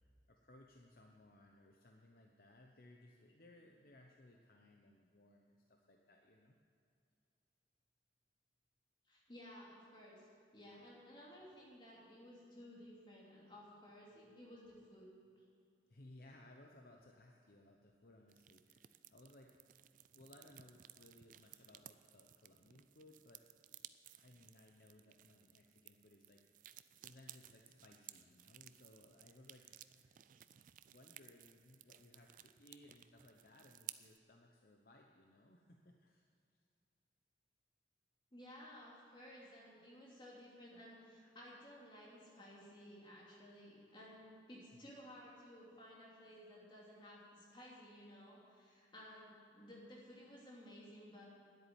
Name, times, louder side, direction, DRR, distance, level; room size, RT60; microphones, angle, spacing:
voice 1, 0.3-6.5 15.9-19.5 20.1-23.4 24.1-26.4 27.0-30.2 30.9-36.3 44.7-44.8, left 1 dB, 55° left, 1 dB, 0.8 m, -63 dB
voice 2, 9.0-10.3 10.5-15.1 15.4-15.5 38.3-51.2, equal, 25° left, -5 dB, 2.9 m, -56 dB
sound 1, 18.3-34.2, right 13 dB, 45° right, 0.4 m, -58 dB
10.0 x 8.4 x 9.3 m, 2.4 s
head